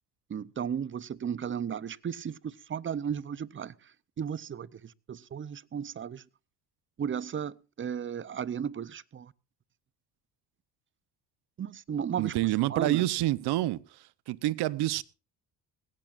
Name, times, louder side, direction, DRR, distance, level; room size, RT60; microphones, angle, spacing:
voice 1, 0.3-6.2 7.0-9.3 11.6-12.3 12.7-13.1, right 8 dB, 30° right, 0.6 m, -35 dB
voice 2, 12.2-13.8 14.3-15.0, right 16 dB, 70° right, 0.9 m, -27 dB
19.5 x 16.5 x 2.5 m
supercardioid pair, 80°, 40 cm